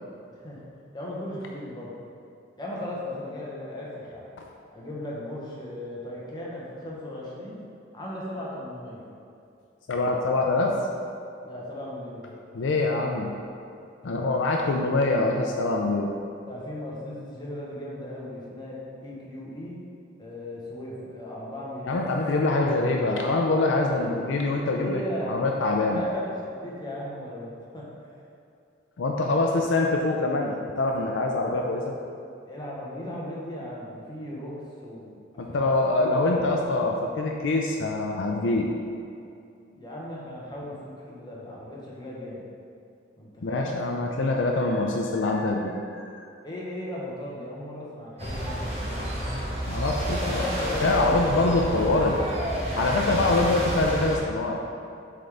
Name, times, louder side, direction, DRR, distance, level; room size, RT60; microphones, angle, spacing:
voice 1, 0.9-1.9 2.6-4.3 4.7-7.6 7.9-9.1 11.4-12.3 14.0-14.2 16.5-19.8 20.2-22.6 23.7-24.1 24.8-25.4 25.9-28.2 31.2-31.3 32.5-34.5 34.8-36.2 39.7-42.4 43.2-43.8 46.4-49.1 49.9-52.1, left 1 dB, 25° left, -5 dB, 1.0 m, -37 dB
voice 2, 9.9-10.8 12.5-13.3 14.0-16.1 21.8-26.0 29.0-32.0 35.4-38.7 43.4-46.1 49.7-50.4 50.8-52.2 52.8-54.6, left 2 dB, 80° left, 1 dB, 0.5 m, -24 dB
sound 1, 48.2-54.2, equal, 35° right, 1.1 m, -30 dB
7.6 x 3.8 x 3.4 m, 2.5 s
head